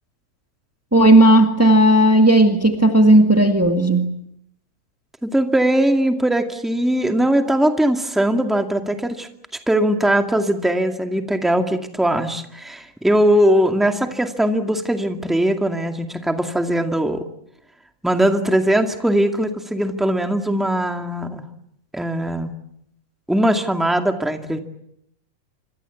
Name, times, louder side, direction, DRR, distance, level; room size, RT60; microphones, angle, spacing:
voice 1, 0.9-4.1, right 1 dB, 20° right, 4 dB, 0.4 m, -13 dB
voice 2, 5.2-9.3 9.7-17.3 18.0-21.4 21.9-22.5 23.3-24.6, right 1 dB, ahead, 5 dB, 1.1 m, -20 dB
27.0 x 25.0 x 8.4 m, 0.76 s
omnidirectional pair, 4.0 m